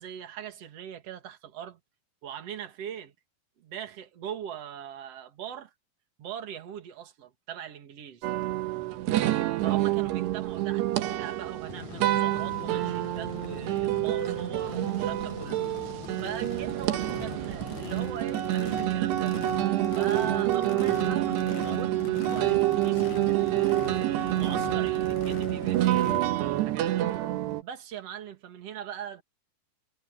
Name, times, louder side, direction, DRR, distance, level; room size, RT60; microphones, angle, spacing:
voice 1, 0.0-1.8 2.2-3.1 3.6-5.7 6.2-8.3 9.6-15.7 16.2-19.4 19.9-27.0 27.6-29.2, right 9 dB, 45° right, 2.5 m, -41 dB
sound 1, 8.2-27.6, right 15 dB, 85° right, 3.4 m, -27 dB
Race car auto racing / Idling / Accelerating revving vroom, 11.7-26.2, left 12 dB, 65° left, 2.1 m, -41 dB
omnidirectional pair, 4.7 m